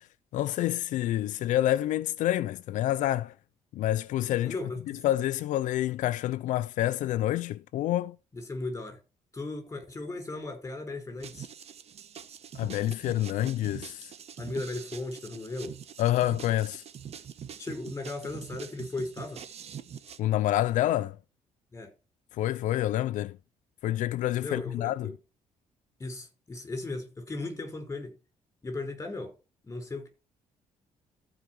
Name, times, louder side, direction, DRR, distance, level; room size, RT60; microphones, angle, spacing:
voice 1, 0.3-3.3 3.7-4.5 5.0-8.2 12.5-14.1 16.0-16.8 20.2-21.2 22.4-23.4 23.8-25.1, left 13 dB, 80° left, 0.5 m, -28 dB
voice 2, 4.4-5.0 8.3-9.0 9.3-11.5 14.4-15.8 17.6-19.4 21.7-21.9 24.4-25.1 26.0-28.1 28.6-29.3 29.6-30.1, left 2 dB, 25° left, 4.7 m, -37 dB
sound 1, 11.2-20.2, right 8 dB, 55° right, 1.2 m, -44 dB
14.5 x 5.1 x 4.7 m
cardioid pair, 95°, 13 cm